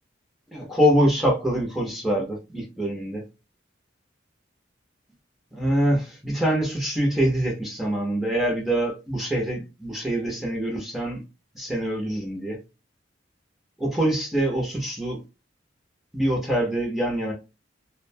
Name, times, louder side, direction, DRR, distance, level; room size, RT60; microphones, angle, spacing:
voice 1, 0.5-3.2 5.5-11.2 11.5-12.6 13.8-15.2 16.1-17.3, right 1 dB, ahead, 0.7 m, -24 dB
2.5 x 2.1 x 2.6 m
head